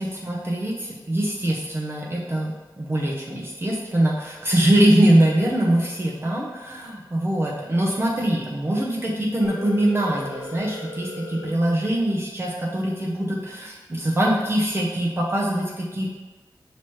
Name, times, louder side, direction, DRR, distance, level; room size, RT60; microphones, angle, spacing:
voice 1, 0.0-16.1, right 1 dB, 30° right, -3 dB, 0.7 m, -23 dB
Telephone, 9.4-11.4, left 1 dB, 50° left, 1.2 m, -36 dB
5.8 x 3.0 x 3.1 m, 1.2 s
wide cardioid pair, 95°, 8 cm